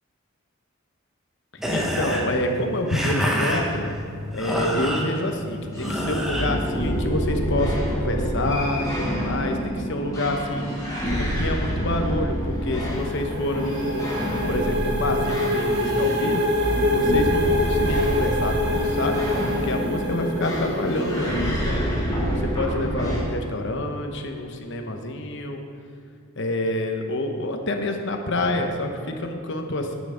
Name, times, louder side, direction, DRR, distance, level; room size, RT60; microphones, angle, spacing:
sound 1, 1.6-7.4, equal, ahead, 1.1 m, -29 dB
voice 1, 1.7-3.9 4.3-10.8 11.1-14.1 14.5-16.4 16.9-19.2 19.6-21.9 22.4-25.6 26.4-29.9, left 1 dB, 60° left, 4 dB, 1.0 m, -27 dB
sound 2, 5.7-23.2, equal, 15° left, 2.3 m, -27 dB
sound 3, 12.6-21.3, left 1 dB, 55° right, 1.4 m, -26 dB
9.4 x 8.7 x 5.0 m, 2.4 s
head